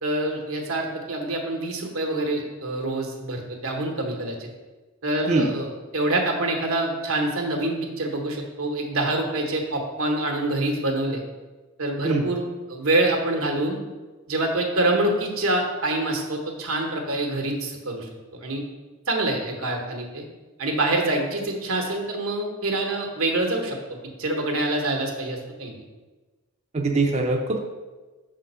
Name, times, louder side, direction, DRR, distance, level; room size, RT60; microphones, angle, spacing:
voice 1, 0.0-4.5 5.0-11.2 11.8-13.8 14.3-18.1 18.4-18.6 19.1-20.2 20.6-23.8 24.2-25.8, right 2 dB, 85° right, 2 dB, 1.1 m, -26 dB
voice 2, 26.7-27.6, right 3 dB, 30° right, 1 dB, 0.5 m, -22 dB
5.9 x 3.7 x 5.5 m, 1.3 s
head